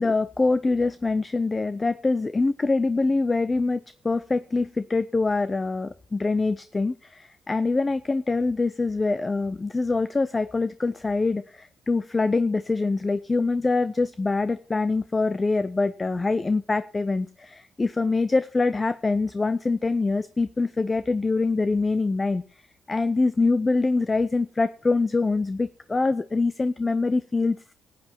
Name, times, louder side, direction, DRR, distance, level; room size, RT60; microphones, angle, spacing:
voice 1, 0.0-22.4 22.9-27.7, left 3 dB, 20° left, 14 dB, 0.5 m, -24 dB
18.0 x 8.3 x 4.5 m, 0.43 s
cardioid pair, 105°, 0 cm